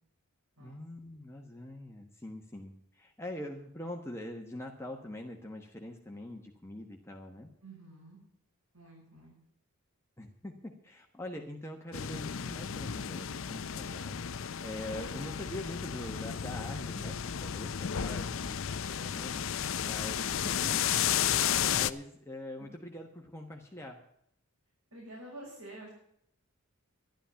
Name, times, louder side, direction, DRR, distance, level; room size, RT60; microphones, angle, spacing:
voice 1, 0.6-7.5 10.2-14.2 14.6-20.7 21.3-24.0, left 1 dB, 10° left, 1 dB, 1.2 m, -44 dB
voice 2, 7.6-8.2 8.7-9.3 20.7-21.1 22.6-22.7 24.9-25.9, right 1 dB, 85° right, -4 dB, 5.9 m, -48 dB
sound 1, 11.9-21.9, left 9 dB, 60° left, 0.6 m, -33 dB
12.0 x 11.5 x 5.8 m, 0.72 s
head